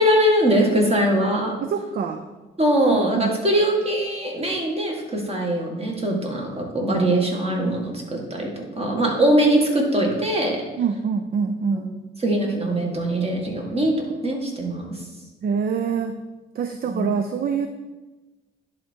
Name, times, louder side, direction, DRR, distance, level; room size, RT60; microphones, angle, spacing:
voice 1, 0.0-1.5 2.6-8.5 8.8-10.6 11.7-11.8 12.2-13.9 14.2-14.9 16.9-17.0, right 1 dB, 30° right, 0 dB, 1.9 m, -21 dB
voice 2, 1.6-2.2 2.9-3.4 10.8-12.0 15.4-16.2 16.5-17.7, right 6 dB, 50° right, 7 dB, 0.5 m, -25 dB
10.5 x 3.6 x 4.5 m, 1.1 s
cardioid pair, 90°, 20 cm